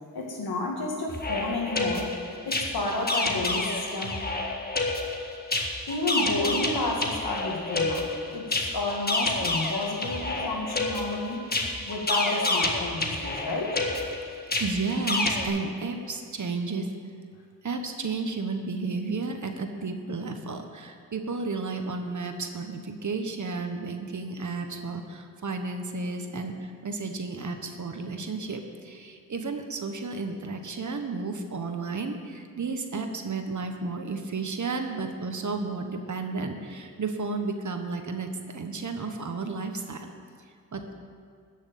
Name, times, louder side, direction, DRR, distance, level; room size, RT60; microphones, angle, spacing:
voice 1, 0.1-2.2 2.5-4.2 5.9-11.5 11.9-13.8, left 2 dB, 90° left, 0 dB, 2.2 m, -31 dB
sound 1, 1.1-15.5, left 2 dB, 25° left, 1.6 m, -29 dB
voice 2, 14.6-16.9 17.6-40.1 40.7-40.9, right 3 dB, 55° right, 5 dB, 1.3 m, -32 dB
13.0 x 6.4 x 9.1 m, 2.2 s
cardioid pair, 75°, 36 cm